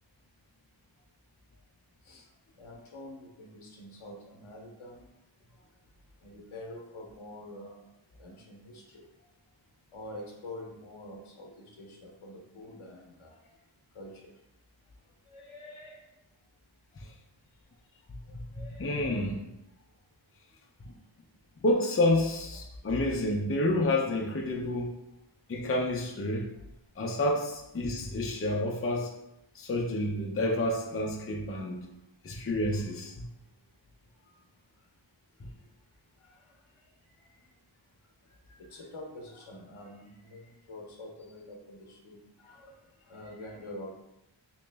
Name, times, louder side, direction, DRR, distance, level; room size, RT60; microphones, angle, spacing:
voice 1, 2.5-5.1 6.2-7.9 8.2-9.1 9.9-13.5 13.9-14.3 15.3-16.1 18.3-19.4 22.5-22.6 31.8-31.9 34.2-34.4 36.2-36.8 37.2-37.5 38.3-44.0, left 1 dB, 80° left, 1 dB, 0.9 m, -47 dB
voice 2, 18.3-19.4 20.8-20.9 21.6-25.0 25.5-26.5 27.0-29.1 29.5-31.8 32.2-33.3, left 1 dB, 30° left, 0 dB, 0.5 m, -29 dB
3.1 x 3.0 x 3.3 m, 0.89 s
wide cardioid pair, 55°, 49 cm